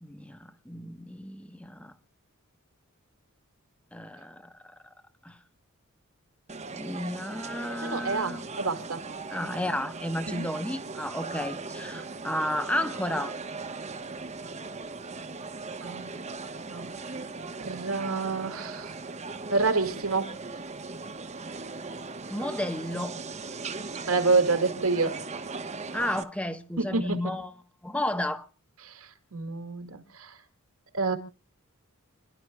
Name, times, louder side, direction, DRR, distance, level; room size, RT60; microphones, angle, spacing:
voice 1, 0.0-1.9 3.9-4.7 5.2-5.4 6.7-8.5 9.3-13.3 22.3-23.2 25.9-27.5 27.8-28.4, left 1 dB, 5° left, 1.0 m, -32 dB
sound 1, 6.5-26.2, right 4 dB, 30° right, 1.1 m, -39 dB
voice 2, 7.8-9.0 10.3-10.5 15.8-16.4 16.7-16.9 17.6-18.9 19.5-20.3 24.1-25.2 26.8-27.4 28.8-29.0 29.3-30.3 30.9-31.2, right 4 dB, 80° right, 2.2 m, -28 dB
29.5 x 11.5 x 2.3 m
head